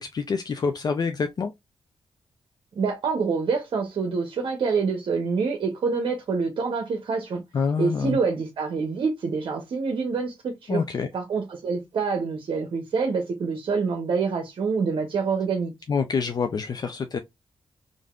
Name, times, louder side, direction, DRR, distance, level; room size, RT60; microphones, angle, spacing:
voice 1, 0.0-1.5 7.5-8.2 10.7-11.1 15.9-17.2, left 5 dB, 50° left, 0.4 m, -26 dB
voice 2, 2.7-7.4 7.8-10.8 11.1-15.7, right 5 dB, 65° right, 0.7 m, -26 dB
3.3 x 2.5 x 2.3 m
cardioid pair, 65°, 9 cm